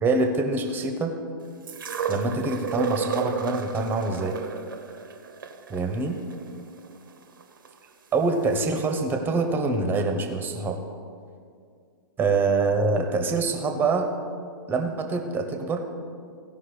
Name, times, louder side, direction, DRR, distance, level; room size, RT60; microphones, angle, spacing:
voice 1, 0.0-1.1 2.1-4.4 5.7-6.2 8.1-10.8 12.2-14.1 14.7-15.8, right 3 dB, 15° right, 5 dB, 1.1 m, -25 dB
sound 1, 1.7-7.7 8.6-8.7, right 6 dB, 65° right, 1.0 m, -33 dB
16.0 x 5.6 x 4.9 m, 2.2 s
figure-of-eight pair, 110°, 12 cm